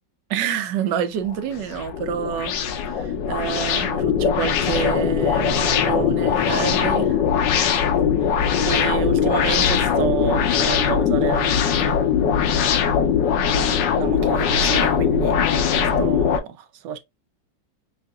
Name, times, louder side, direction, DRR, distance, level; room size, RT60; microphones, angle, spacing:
voice 1, 0.3-7.2 8.6-12.0 13.5-17.0, right 8 dB, 80° right, 1.3 m, -28 dB
sound 1, 1.3-16.4, left 7 dB, 85° left, 1.3 m, -21 dB
5.7 x 2.7 x 2.3 m
omnidirectional pair, 1.9 m